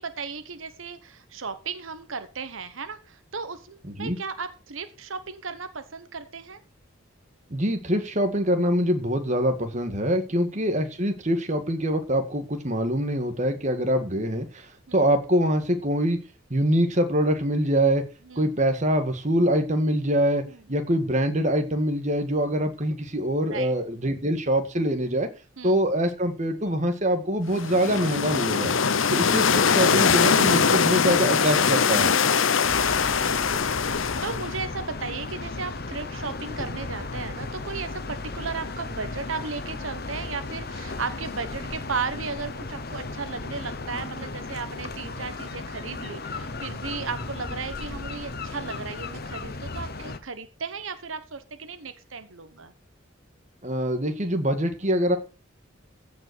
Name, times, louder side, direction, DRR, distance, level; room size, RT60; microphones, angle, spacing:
voice 1, 0.0-6.6 14.9-15.0 18.2-18.4 20.5-20.6 23.5-23.7 25.6-25.8 32.7-52.7, right 5 dB, 90° right, 10 dB, 1.2 m, -35 dB
voice 2, 7.5-14.7 14.9-16.2 16.5-18.0 18.4-20.4 20.7-25.3 25.6-28.7 29.1-32.1 53.6-55.2, equal, 35° right, 6 dB, 1.8 m, -24 dB
sound 1, 27.5-34.6, left 6 dB, 85° left, 0.8 m, -22 dB
sound 2, 32.6-50.2, left 3 dB, 50° left, 1.1 m, -35 dB
15.5 x 5.5 x 6.3 m, 0.34 s
head